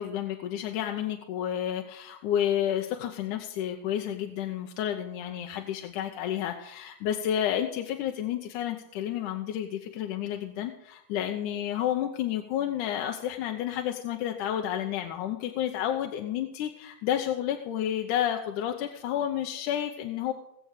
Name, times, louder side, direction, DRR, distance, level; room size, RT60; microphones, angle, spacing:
voice 1, 0.0-20.3, left 10 dB, 80° left, 4 dB, 2.3 m, -30 dB
19.0 x 7.8 x 6.6 m, 0.81 s
omnidirectional pair, 3.6 m